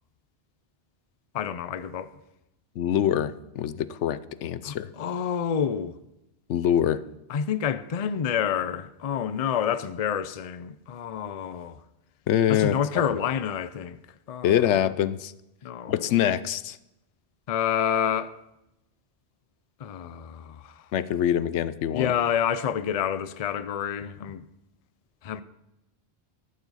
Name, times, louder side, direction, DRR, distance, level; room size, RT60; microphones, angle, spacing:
voice 1, 1.3-2.1 4.6-6.0 7.3-11.8 12.5-14.0 14.3-14.6 15.6-16.1 17.5-18.3 19.8-20.9 21.9-24.4 25.2-25.4, left 8 dB, 45° left, 0.5 m, -28 dB
voice 2, 2.8-4.9 6.5-7.0 12.3-12.8 13.1-13.2 14.4-15.3 15.9-16.8 20.9-22.1, left 10 dB, 85° left, 0.9 m, -24 dB
13.5 x 12.0 x 4.1 m
omnidirectional pair, 1.2 m